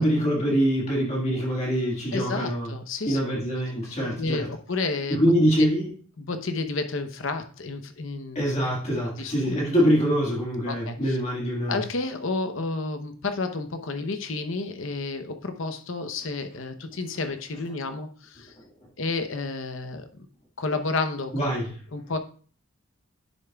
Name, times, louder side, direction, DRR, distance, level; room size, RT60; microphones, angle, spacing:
voice 1, 0.0-2.7 3.1-4.4 5.1-5.9 8.4-11.8 21.3-21.7, equal, 30° left, 1.8 m, -24 dB
voice 2, 2.1-3.2 4.2-5.2 5.6-5.7 6.2-8.5 9.2-9.6 10.7-11.2 11.7-18.5 19.0-20.3 20.6-21.5 21.9-22.2, left 3 dB, 65° left, 0.8 m, -31 dB
10.5 x 6.7 x 2.3 m
head